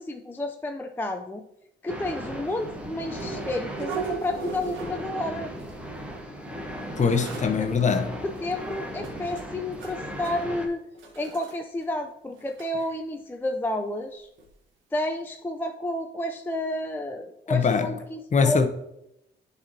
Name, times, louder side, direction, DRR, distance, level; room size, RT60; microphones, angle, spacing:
voice 1, 0.0-1.4 1.8-5.5 7.6-7.7 8.2-10.8 11.2-14.3 14.9-18.7, left 1 dB, 10° left, 0.4 m, -31 dB
sound 1, 1.9-10.7, equal, 5° right, 1.0 m, -37 dB
sound 2, 3.1-5.2 5.5-6.0 6.8-6.9 7.2-7.5 8.3-8.4 9.0-10.0 10.2-10.5 10.9-11.5 11.8-11.9 12.3-12.7 14.4-14.5 14.9-15.0, right 5 dB, 75° right, 1.3 m, -37 dB
voice 2, 7.0-8.2 17.5-17.9 18.3-18.7, left 5 dB, 35° left, 0.8 m, -22 dB
10.0 x 4.1 x 2.7 m
cardioid pair, 90°, 20 cm